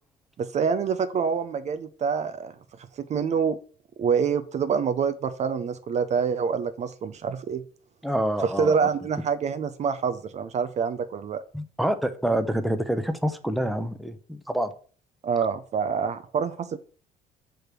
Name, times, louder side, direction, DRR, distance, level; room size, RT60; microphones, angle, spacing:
voice 1, 0.4-2.5 3.0-3.6 4.0-7.6 8.4-11.4 15.2-16.8, right 6 dB, 40° right, 12 dB, 0.5 m, -26 dB
voice 2, 8.0-8.9 11.5-14.7, right 1 dB, ahead, 8 dB, 0.6 m, -27 dB
6.3 x 3.4 x 5.9 m, 0.42 s
cardioid pair, 110°, 17 cm